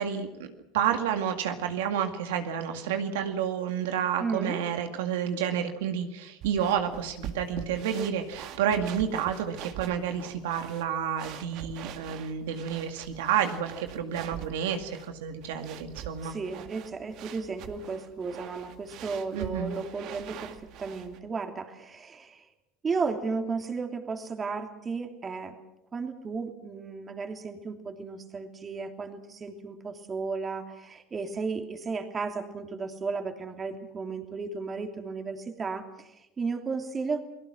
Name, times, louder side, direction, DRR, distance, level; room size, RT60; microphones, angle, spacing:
voice 1, 0.0-16.3 19.3-19.7, right 8 dB, 85° right, 6 dB, 2.1 m, -30 dB
voice 2, 4.2-4.6 16.2-22.5 22.8-25.6 25.9-37.2, right 4 dB, 25° right, 6 dB, 2.9 m, -34 dB
sound 1, 6.4-21.2, right 9 dB, 60° right, 1.9 m, -44 dB
29.0 x 18.5 x 6.2 m, 0.90 s
supercardioid pair, 105°, 0 cm